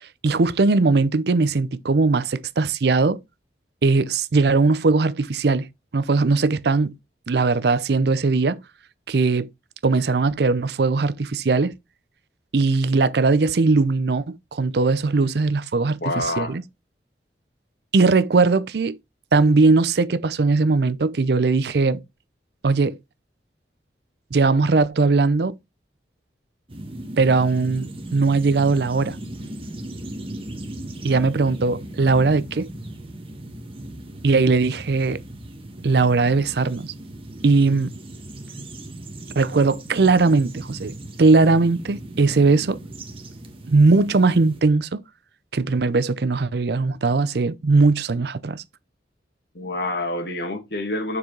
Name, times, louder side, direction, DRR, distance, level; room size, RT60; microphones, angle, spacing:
voice 1, 0.0-3.2 3.8-5.7 5.9-7.0 7.3-8.6 9.1-9.5 9.8-11.7 12.5-16.6 17.9-19.0 19.3-22.0 22.6-23.0 24.3-25.6 27.2-29.2 31.0-32.7 34.2-35.2 35.8-36.9 37.4-37.9 39.4-40.9 41.2-42.8 43.7-45.0 45.5-48.6, right 3 dB, 65° right, 0.5 m, -19 dB
voice 2, 16.0-16.6 49.6-51.2, left 2 dB, 60° left, 1.7 m, -27 dB
sound 1, 26.7-44.6, right 1 dB, 30° right, 1.2 m, -37 dB
7.1 x 4.9 x 3.8 m
head